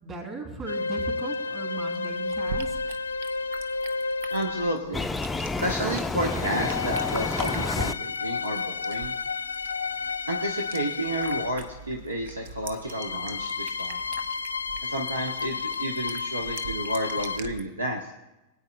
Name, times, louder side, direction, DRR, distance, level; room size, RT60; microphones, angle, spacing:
voice 1, 0.0-2.8, right 3 dB, 30° right, 1 dB, 3.8 m, -37 dB
sound 1, 0.7-5.0 6.1-11.7 12.8-17.4, left 4 dB, 75° left, 0.4 m, -31 dB
sound 2, 1.8-17.6, right 6 dB, 60° right, 0.6 m, -44 dB
voice 2, 4.3-5.1 5.4-9.1 10.3-14.0 14.8-18.0, right 1 dB, 75° right, 2 dB, 1.0 m, -31 dB
sound 3, 4.9-7.9, left 3 dB, 10° left, 0.5 m, -29 dB
24.0 x 8.7 x 2.2 m, 0.97 s
figure-of-eight pair, 90°, 0 cm